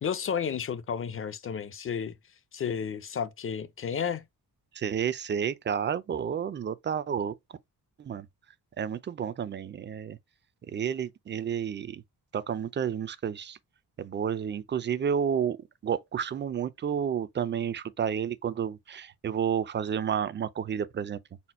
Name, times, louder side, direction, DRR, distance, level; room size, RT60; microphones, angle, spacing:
voice 1, 0.0-2.1 2.5-4.2, left 7 dB, 35° left, 0.5 m, -32 dB
voice 2, 4.7-7.3 8.0-8.3 8.8-10.2 10.7-12.0 12.3-13.6 14.0-15.6 15.8-21.2, right 8 dB, 30° right, 0.4 m, -30 dB
4.2 x 2.1 x 4.1 m
cardioid pair, 125°, 38 cm